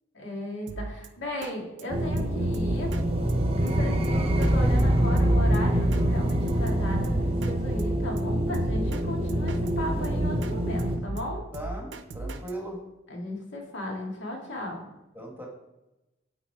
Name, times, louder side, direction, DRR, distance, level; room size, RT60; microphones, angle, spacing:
voice 1, 0.1-2.9 3.6-11.4 13.1-14.8, left 1 dB, 80° left, 0 dB, 2.0 m, -36 dB
Drum kit, 0.7-1.1 1.4-1.5 1.8-1.9 2.2-2.3 2.5-3.0 3.3-3.4 3.7-3.8 4.0-4.5 4.8-4.9 5.2-6.0 6.3-7.5 7.8-7.9 8.2-8.3 8.5-9.0 9.3-10.5 10.8-12.5, right 2 dB, 70° right, 0.5 m, -37 dB
sound 1, 1.9-11.0, right 1 dB, 30° right, 0.7 m, -25 dB
voice 2, 11.5-12.9 15.1-15.5, right 1 dB, 10° right, 0 dB, 1.2 m, -38 dB
9.0 x 4.0 x 4.6 m, 0.97 s
head